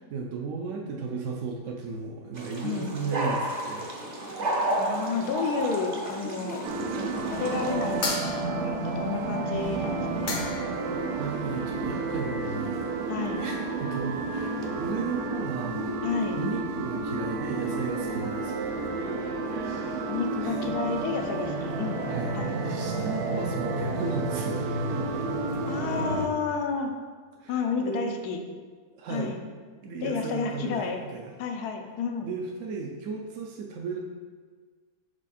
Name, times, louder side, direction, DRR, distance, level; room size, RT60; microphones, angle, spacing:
voice 1, 0.1-3.9 11.2-12.9 13.4-15.8 16.4-18.7 20.4-20.6 22.1-22.3 22.6-24.7 26.5-26.6 27.4-28.2 29.0-29.3 29.8-31.3 32.2-34.0, right 4 dB, 65° right, -1 dB, 0.9 m, -35 dB
sound 1, 2.3-8.1, right 1 dB, 40° right, 0.6 m, -32 dB
voice 2, 4.8-6.7 7.3-8.2 8.6-10.4 13.1-13.4 16.0-16.4 20.1-22.0 22.3-22.5 25.7-26.9 27.5-28.4 29.1-29.4 30.0-31.0 31.4-32.3, left 5 dB, 90° left, 4 dB, 1.2 m, -31 dB
sound 2, 6.6-26.3, right 3 dB, 85° right, 1.2 m, -31 dB
sound 3, 8.0-8.8 9.9-10.0 10.3-10.8, left 3 dB, 50° left, 0.6 m, -32 dB
5.4 x 4.8 x 4.2 m, 1.5 s
omnidirectional pair, 1.6 m